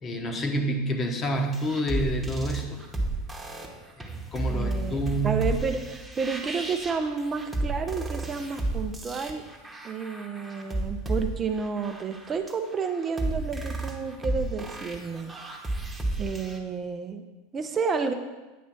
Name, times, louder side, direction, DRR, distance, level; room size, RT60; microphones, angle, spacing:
voice 1, 0.0-2.8 4.0-5.4, right 1 dB, 30° left, 3 dB, 1.1 m, -28 dB
sound 1, 1.4-16.6, right 2 dB, 10° right, 1.1 m, -33 dB
voice 2, 4.5-5.0 5.2-9.4 9.8-15.3 16.2-17.2 17.5-18.1, right 5 dB, 30° right, 6 dB, 0.5 m, -30 dB
9.1 x 3.1 x 6.0 m, 1.2 s
hypercardioid pair, 95°, 0 cm